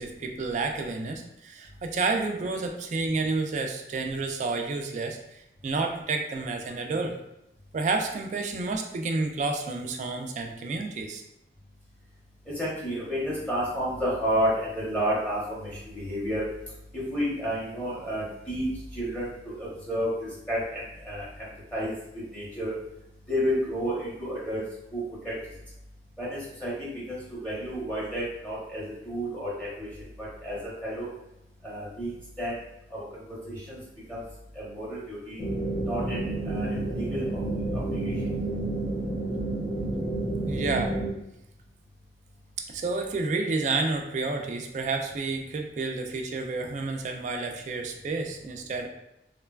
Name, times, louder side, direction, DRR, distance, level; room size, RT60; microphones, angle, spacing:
voice 1, 0.0-7.2 7.7-11.2 40.5-40.9 42.6-48.9, right 3 dB, 45° right, 4 dB, 0.3 m, -30 dB
voice 2, 12.6-16.4 16.9-18.6 18.9-20.1 20.5-20.8 21.1-21.2 21.7-21.9 22.3-22.7 23.3-24.6 24.9-25.3 26.2-29.9 30.2-31.1 31.6-32.1 32.4-32.5 32.9-33.8 34.1-34.2 34.6-35.4 35.9-36.2 36.5-37.2 37.9-38.1, equal, 5° left, -8 dB, 0.8 m, -31 dB
sound 1, 35.4-41.1, right 2 dB, 35° left, 0.4 m, -30 dB
3.1 x 2.1 x 2.2 m, 0.84 s
head